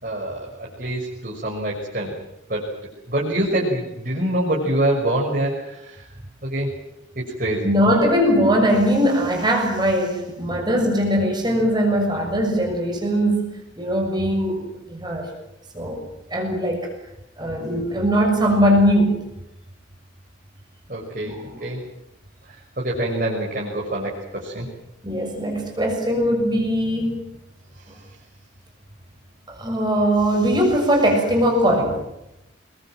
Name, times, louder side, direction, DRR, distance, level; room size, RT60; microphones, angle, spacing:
voice 1, 0.0-2.1 2.5-2.7 3.1-6.0 6.4-6.7 7.2-7.7 20.9-21.4 21.6-21.8 22.8-24.7, right 1 dB, 45° right, -2 dB, 6.1 m, -25 dB
voice 2, 7.6-13.5 13.8-15.3 15.7-16.0 16.3-16.9 17.4-19.2 21.2-21.6 25.0-27.2 29.5-32.0, equal, 20° right, 2 dB, 6.5 m, -20 dB
28.0 x 22.0 x 7.6 m, 0.87 s
head